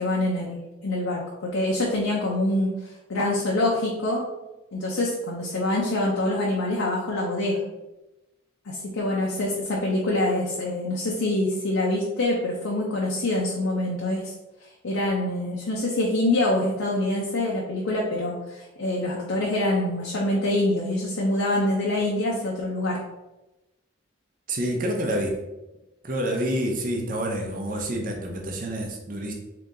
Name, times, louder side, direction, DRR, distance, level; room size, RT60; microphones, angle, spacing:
voice 1, 0.0-2.7 3.1-4.2 4.7-7.6 8.7-14.3 14.8-23.0, left 1 dB, 85° left, -3 dB, 0.7 m, -25 dB
voice 2, 24.5-25.4 26.0-29.3, right 1 dB, 45° right, 1 dB, 0.6 m, -28 dB
3.7 x 2.9 x 3.7 m, 1.0 s
head